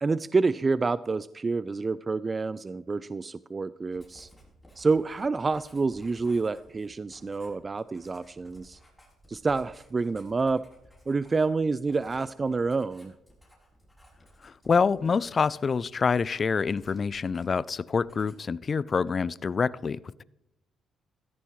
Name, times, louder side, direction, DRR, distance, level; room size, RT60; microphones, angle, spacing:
voice 1, 0.0-4.3 4.8-8.8 9.3-10.6 11.1-13.1, right 4 dB, 30° right, 0.3 m, -28 dB
Writing, 3.9-17.7 18.0-18.6, equal, 5° left, 5.8 m, -57 dB
voice 2, 14.4-20.2, left 5 dB, 40° left, 0.4 m, -26 dB
16.0 x 13.5 x 3.2 m
cardioid pair, 90°, 0 cm